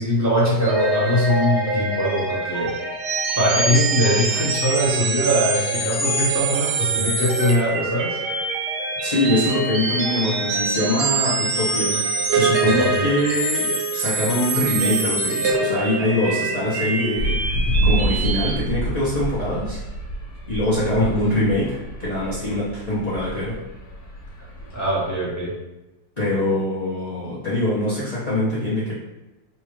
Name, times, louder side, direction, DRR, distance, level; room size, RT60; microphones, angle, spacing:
voice 1, 0.0-2.8 3.4-8.2 12.6-13.0 21.0-21.1 24.7-25.5, equal, 15° left, -8 dB, 0.6 m, -22 dB
sound 1, 0.6-18.5, right 3 dB, 70° right, 1.1 m, -24 dB
voice 2, 9.0-17.4 17.8-19.8 20.5-23.6 26.2-28.9, left 1 dB, 75° left, -9 dB, 0.3 m, -23 dB
sound 2, 17.2-25.2, right 1 dB, 60° left, 1.3 m, -28 dB
4.1 x 2.4 x 3.1 m, 1.0 s
omnidirectional pair, 2.0 m